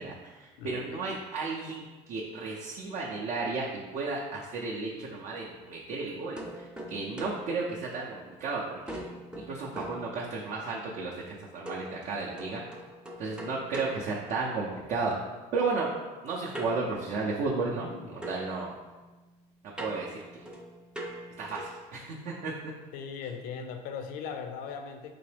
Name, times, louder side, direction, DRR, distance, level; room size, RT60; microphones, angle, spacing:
voice 1, 0.0-11.1 11.5-12.6 13.2-15.2 15.5-15.9 16.2-18.7 19.8-20.4 21.4-22.7, right 3 dB, 60° right, -4 dB, 0.5 m, -33 dB
voice 2, 0.6-1.1 17.9-18.1 22.9-25.1, left 6 dB, 70° left, 6 dB, 0.4 m, -39 dB
sound 1, 6.4-8.5 8.9-10.7 11.7-14.9 16.5-17.9 18.2-21.9, equal, 5° right, 0.5 m, -43 dB
3.8 x 3.0 x 3.3 m, 1.2 s
cardioid pair, 120°, 15 cm